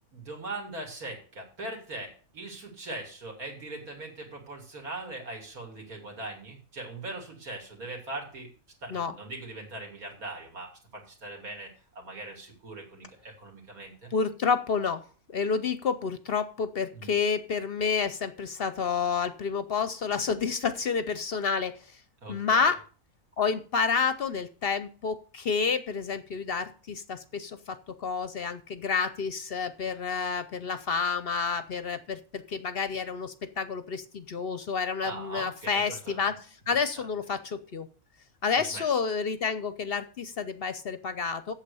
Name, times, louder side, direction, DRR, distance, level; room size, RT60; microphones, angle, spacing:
voice 1, 0.1-8.5 8.8-14.1 16.9-17.1 22.2-22.7 35.0-36.4 38.7-39.0, right 2 dB, 70° right, 1 dB, 3.2 m, -41 dB
voice 2, 14.1-15.0 15.3-22.0 22.3-22.8 23.4-37.9 38.4-41.5, left 5 dB, 55° left, 12 dB, 0.7 m, -29 dB
8.3 x 7.4 x 6.9 m, 0.39 s
omnidirectional pair, 1.6 m